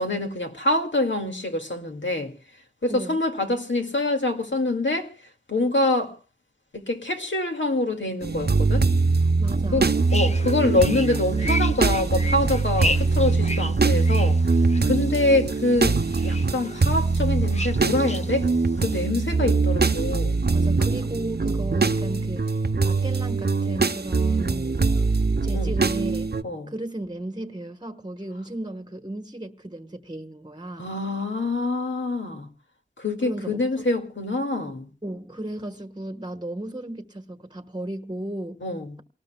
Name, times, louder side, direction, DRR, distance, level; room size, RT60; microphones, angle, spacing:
voice 1, 0.0-2.3 2.8-5.1 5.5-6.2 6.7-8.9 9.7-14.4 14.8-16.0 16.2-18.5 18.8-20.4 25.5-25.7 26.4-26.7 30.8-32.5 33.0-34.9 38.6-39.0, left 2 dB, 70° left, 2.2 m, -25 dB
voice 2, 2.9-3.2 9.4-9.9 20.5-22.5 22.8-25.0 25.4-26.3 26.7-30.9 33.2-33.9 35.0-38.6, right 1 dB, 20° right, 1.2 m, -35 dB
sound 1, 8.2-26.4, right 4 dB, 55° right, 0.7 m, -22 dB
sound 2, 9.9-19.1, left 1 dB, 35° left, 0.9 m, -35 dB
28.5 x 19.0 x 2.3 m
wide cardioid pair, 50°, 20 cm